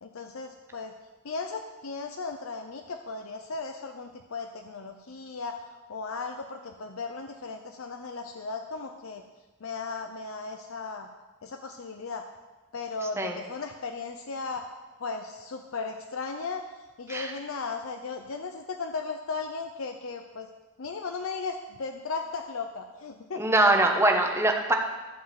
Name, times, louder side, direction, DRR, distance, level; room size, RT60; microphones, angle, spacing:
voice 1, 0.0-0.9 1.2-9.2 9.6-11.1 11.4-12.2 12.7-14.7 15.0-16.6 17.0-20.5 20.8-23.4, left 4 dB, 70° left, 5 dB, 0.7 m, -36 dB
voice 2, 23.4-24.7, right 2 dB, 10° right, 2 dB, 1.1 m, -22 dB
12.5 x 4.8 x 7.6 m, 1.2 s
head